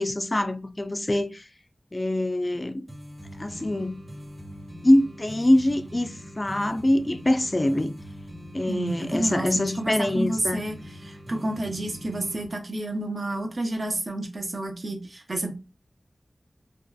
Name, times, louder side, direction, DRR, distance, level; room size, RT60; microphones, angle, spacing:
voice 1, 0.0-1.5 1.9-2.8 3.4-4.0 4.8-7.9 8.5-10.6, left 1 dB, 30° left, 0.3 m, -24 dB
sound 1, 2.9-12.5, equal, 35° right, 1.1 m, -42 dB
voice 2, 8.7-10.8 11.0-15.5, right 2 dB, 60° right, 0.6 m, -30 dB
2.6 x 2.3 x 2.2 m
wide cardioid pair, 50°, 0 cm